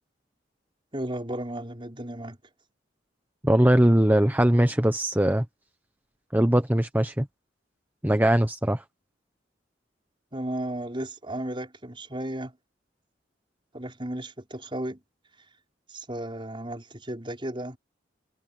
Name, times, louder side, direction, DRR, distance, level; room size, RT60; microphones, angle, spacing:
voice 1, 0.9-2.4 10.3-12.5 13.7-15.0 15.9-17.8, right 1 dB, 30° right, 5.4 m, -34 dB
voice 2, 3.4-5.4 6.3-7.3 8.0-8.8, right 1 dB, 10° right, 1.0 m, -21 dB
head